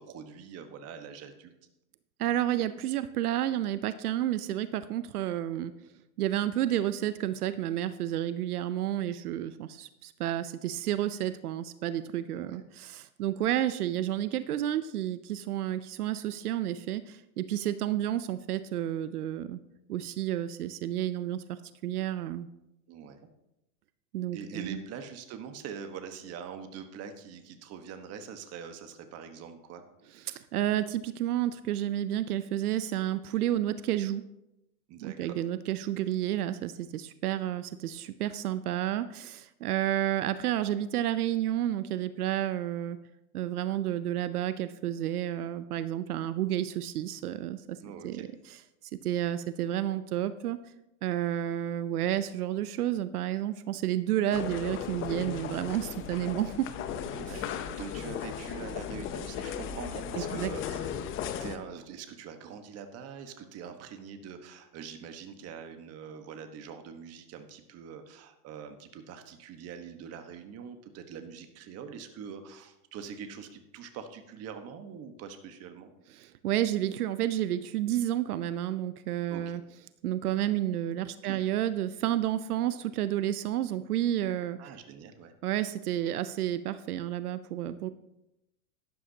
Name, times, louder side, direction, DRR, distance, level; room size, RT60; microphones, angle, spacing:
voice 1, 0.0-1.5 12.3-12.6 22.9-23.3 24.3-29.8 34.9-35.3 47.8-48.3 57.1-60.9 61.4-75.9 79.3-79.5 81.2-81.5 82.5-82.7 84.6-85.3, right 7 dB, 35° right, 7 dB, 1.3 m, -44 dB
voice 2, 2.2-5.7 6.2-19.6 19.9-22.5 24.1-24.8 30.2-34.2 35.0-43.0 43.3-47.8 48.0-48.6 49.0-50.6 51.0-56.7 60.2-60.5 76.2-79.6 80.0-84.6 85.4-87.9, right 12 dB, 85° right, 13 dB, 0.7 m, -31 dB
sound 1, 54.3-61.6, left 9 dB, 30° left, 0.7 m, -36 dB
12.0 x 11.0 x 2.8 m, 0.89 s
hypercardioid pair, 120°, 44 cm